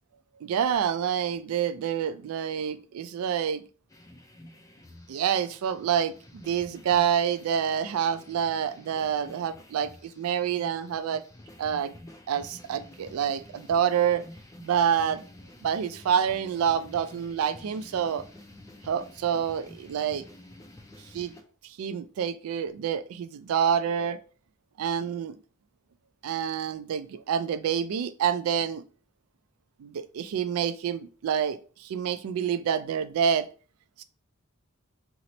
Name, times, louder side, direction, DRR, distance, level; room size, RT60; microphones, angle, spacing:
voice 1, 0.4-3.6 5.1-11.2 11.6-11.9 12.3-14.2 14.6-15.2 15.6-18.2 18.9-20.2 21.1-21.3 21.6-24.2 24.8-25.4 26.2-28.8 29.8-33.5 34.0-34.1, right 8 dB, 90° right, 0.3 m, -27 dB
sound 1, 3.9-21.4, left 1 dB, 15° left, 0.3 m, -50 dB
2.9 x 2.0 x 3.9 m
head